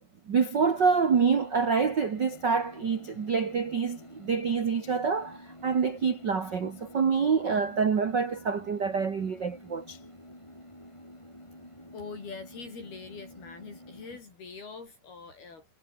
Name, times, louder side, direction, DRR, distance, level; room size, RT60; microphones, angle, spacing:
voice 1, 0.3-10.0, right 5 dB, 85° right, 0.9 m, -26 dB
sound 1, 0.6-14.2, left 1 dB, 5° left, 6.5 m, -49 dB
voice 2, 11.9-15.7, left 5 dB, 65° left, 7.5 m, -43 dB
omnidirectional pair, 4.8 m